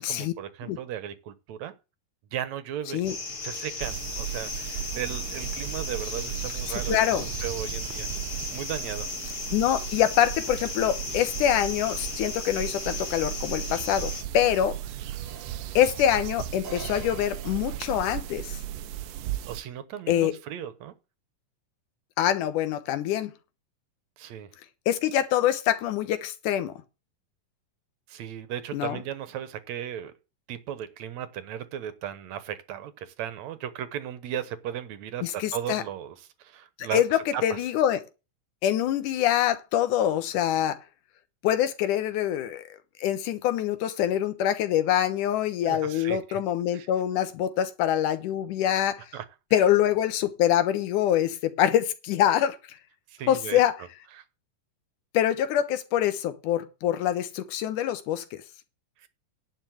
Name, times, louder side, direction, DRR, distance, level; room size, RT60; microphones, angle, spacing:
voice 1, 0.0-1.7 2.3-3.0 3.4-8.1 8.5-9.1 19.5-20.9 24.2-24.5 28.1-30.1 30.5-37.0 37.3-37.6 45.7-46.4 46.7-46.9 49.1-49.3 49.5-49.6 53.1-53.6 54.2-54.3 59.0-59.1, right 10 dB, 65° right, 2.0 m, -36 dB
sound 1, 3.0-14.2, left 4 dB, 45° left, 2.5 m, -36 dB
sound 2, 3.8-19.6, right 12 dB, 90° right, 1.5 m, -36 dB
voice 2, 6.9-7.3 9.5-14.8 15.8-18.6 20.1-20.3 22.2-23.3 24.9-26.7 28.7-29.0 35.2-35.8 36.8-38.0 38.6-40.8 41.4-42.6 43.0-49.0 49.5-52.6 53.3-53.7 55.1-58.4, left 11 dB, 70° left, 2.5 m, -25 dB
sound 3, 15.2-18.6, right 4 dB, 40° right, 1.1 m, -46 dB
11.0 x 5.1 x 7.7 m
omnidirectional pair, 3.9 m